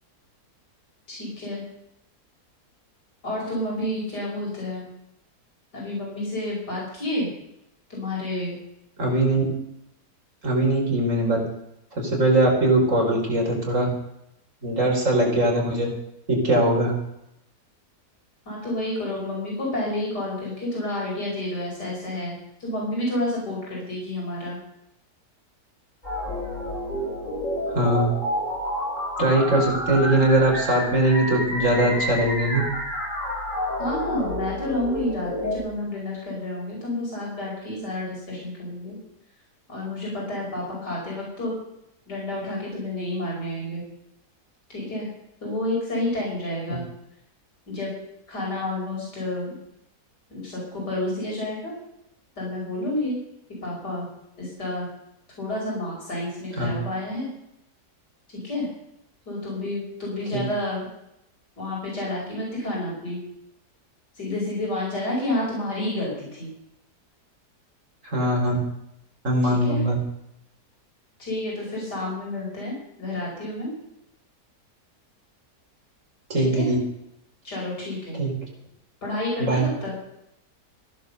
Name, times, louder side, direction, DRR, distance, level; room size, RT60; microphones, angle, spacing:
voice 1, 1.1-1.6 3.2-4.9 5.7-7.3 7.9-8.6 18.5-24.6 33.8-39.0 39.7-41.5 42.1-43.8 44.7-45.1 45.4-46.8 47.7-47.9 48.3-49.6 50.3-51.7 52.4-53.2 53.6-54.1 54.4-54.9 55.4-57.3 58.3-58.7 59.3-60.9 61.6-63.2 64.1-66.5 69.4-69.8 71.2-73.7 76.4-76.7 77.4-78.2 79.0-79.9, left 1 dB, 80° left, -4 dB, 6.2 m, -30 dB
voice 2, 9.0-9.4 10.4-11.4 11.9-13.9 14.6-15.9 16.3-16.9 27.7-28.1 29.2-32.6 56.6-56.7 60.3-60.4 68.0-68.6 69.2-70.0 76.3-76.8 78.2-78.3 79.4-79.7, right 1 dB, 50° right, -1 dB, 5.0 m, -21 dB
sound 1, 26.0-35.6, left 1 dB, 50° left, 7.7 m, -29 dB
16.0 x 11.0 x 6.8 m, 0.81 s
omnidirectional pair, 1.7 m